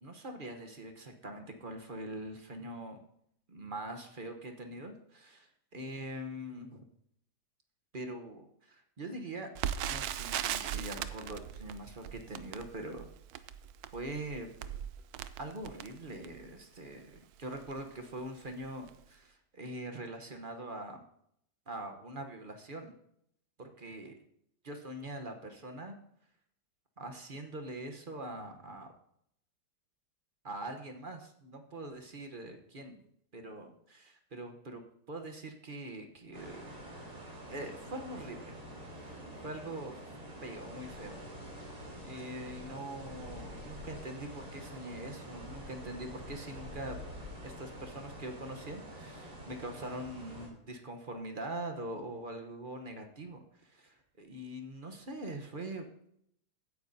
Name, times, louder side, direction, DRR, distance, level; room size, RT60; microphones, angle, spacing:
voice 1, 0.0-3.0 3.5-6.8 7.9-9.5 9.8-13.1 13.9-14.5 15.4-21.0 21.7-22.9 23.6-24.1 24.6-25.9 27.0-28.9 30.4-33.0 33.3-36.6 37.5-38.6 38.9-40.0 40.4-41.2 42.0-47.0 47.4-55.9, right 1 dB, 40° right, 5 dB, 0.9 m, -43 dB
Crackle, 9.6-16.5 17.1-17.2 17.5-17.8 18.4-18.6 18.9-19.0, right 10 dB, 70° right, 1.0 m, -39 dB
sound 1, 36.3-50.5, equal, 55° right, 3.5 m, -47 dB
16.0 x 9.5 x 2.7 m, 0.72 s
omnidirectional pair, 1.8 m